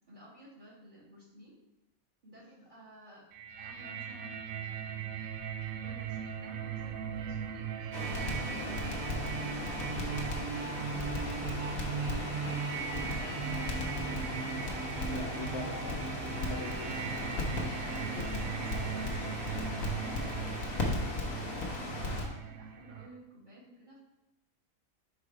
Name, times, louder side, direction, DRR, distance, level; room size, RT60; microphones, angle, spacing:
voice 1, 0.1-1.6 2.2-3.2 3.6-5.1 5.7-7.6 8.1-10.0 10.9-14.0 17.0-20.8 21.3-24.0, right 1 dB, 35° right, -7 dB, 2.3 m, -54 dB
sound 1, 3.3-23.1, right 7 dB, 80° right, 1.0 m, -38 dB
Crackle, 7.9-22.3, left 2 dB, 90° left, 1.5 m, -37 dB
voice 2, 15.0-16.1 16.4-17.0 18.2-18.3 19.1-19.3, left 5 dB, 55° left, -2 dB, 0.7 m, -44 dB
5.7 x 3.8 x 4.8 m, 0.94 s
omnidirectional pair, 1.4 m